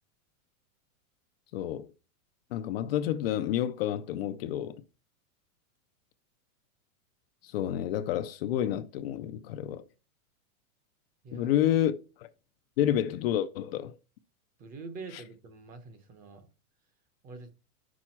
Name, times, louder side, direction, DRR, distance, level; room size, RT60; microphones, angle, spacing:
voice 1, 1.5-1.9 2.5-4.8 7.4-9.8 11.3-11.9 12.8-13.9, left 11 dB, 45° left, 0.6 m, -29 dB
voice 2, 11.2-11.6 14.6-16.5 17.2-17.5, right 3 dB, 20° right, 0.8 m, -45 dB
8.0 x 6.2 x 4.4 m
supercardioid pair, 165°, 43 cm